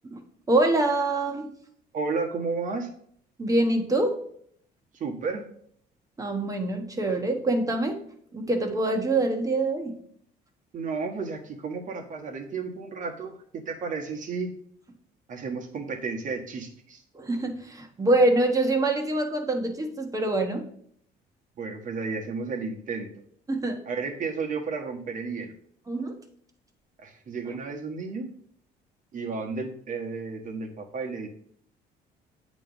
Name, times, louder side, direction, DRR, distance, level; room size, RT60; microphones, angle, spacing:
voice 1, 0.5-1.5 3.4-4.2 6.2-8.0 8.3-10.0 17.1-20.6 23.5-23.8 25.9-26.1, right 2 dB, 20° right, 4 dB, 1.1 m, -25 dB
voice 2, 1.9-2.9 4.9-5.4 10.7-14.5 15.3-17.0 21.6-23.1 23.8-25.5 27.0-28.3 29.1-31.3, right 4 dB, 50° right, 3 dB, 1.3 m, -32 dB
8.3 x 3.1 x 5.3 m, 0.64 s
cardioid pair, 110°, 17 cm